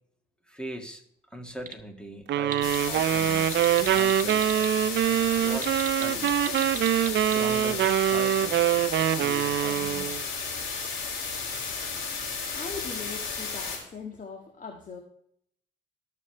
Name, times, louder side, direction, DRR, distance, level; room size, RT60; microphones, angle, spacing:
voice 1, 0.5-1.0 1.3-4.5 5.4-6.4 7.2-8.7 9.1-10.2, equal, 5° left, 4 dB, 2.1 m, -40 dB
sound 1, 1.5-1.8 2.2-2.8 3.4-4.7 5.5-7.4, right 6 dB, 40° right, 1.2 m, -36 dB
sound 2, 2.3-10.2, right 11 dB, 65° right, 0.5 m, -24 dB
sound 3, 2.6-13.8, left 4 dB, 75° left, 5.2 m, -33 dB
voice 2, 12.2-15.0, left 5 dB, 40° left, 1 dB, 1.7 m, -40 dB
20.0 x 6.9 x 3.3 m, 0.69 s
cardioid pair, 90°, 20 cm